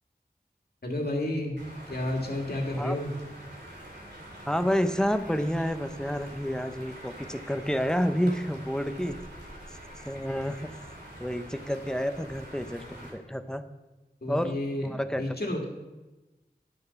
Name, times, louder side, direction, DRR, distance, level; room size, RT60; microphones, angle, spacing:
voice 1, 0.8-1.6 1.9-3.1 14.2-15.7, left 1 dB, 70° left, 1 dB, 1.9 m, -31 dB
sound 1, 1.6-13.1, right 1 dB, 85° right, 2.6 m, -45 dB
voice 2, 4.5-9.2 10.0-10.7 11.2-13.6 14.3-15.4, equal, 5° left, 9 dB, 0.7 m, -29 dB
10.5 x 6.6 x 5.8 m, 1.1 s
wide cardioid pair, 50°, 17 cm